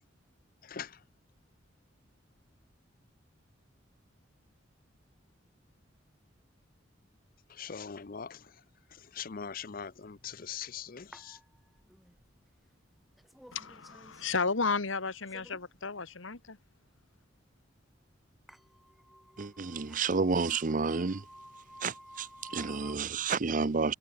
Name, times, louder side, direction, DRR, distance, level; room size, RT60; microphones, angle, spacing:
voice 1, 0.6-1.0 7.5-8.6 8.9-11.4, left 7 dB, 45° left, 0.6 m, -42 dB
sound 1, 10.0-10.1 11.0-12.3 12.6-12.7 13.2-14.2 14.5-14.9 15.3-15.6 16.1-16.2 16.4-16.5 16.9-17.1 17.9-18.0 18.3-22.9, equal, ahead, 3.2 m, -54 dB
voice 2, 13.5-16.6, left 4 dB, 85° left, 1.9 m, -33 dB
voice 3, 19.4-21.2 21.8-23.9, right 4 dB, 40° right, 0.6 m, -30 dB
head